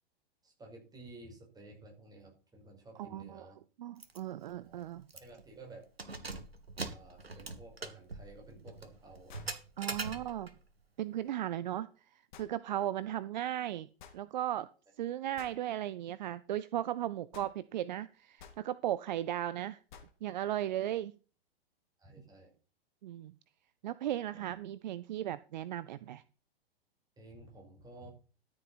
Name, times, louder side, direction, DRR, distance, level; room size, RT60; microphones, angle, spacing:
voice 1, 0.4-3.6 4.6-5.9 6.9-9.6 10.0-10.4 12.8-13.1 22.0-22.5 27.2-28.1, right 2 dB, 15° right, 1 dB, 5.5 m, -53 dB
voice 2, 3.0-3.5 3.8-5.1 9.8-10.5 11.0-13.9 14.1-14.7 15.0-19.8 20.2-21.1 23.0-23.3 23.8-26.2, right 12 dB, 50° right, 17 dB, 0.6 m, -36 dB
Keys jangling, 4.0-4.2 4.5-4.6 5.1-5.4 5.9-10.6, right 3 dB, 85° right, 1.7 m, -42 dB
sound 1, 8.0-8.1 9.3-9.6 12.3-12.5 14.0-14.2 15.4-15.6 17.3-17.6 18.4-18.6 19.9-20.2, left 7 dB, 50° left, 2.4 m, -53 dB
13.5 x 7.8 x 4.2 m, 0.36 s
figure-of-eight pair, 105°, 30 cm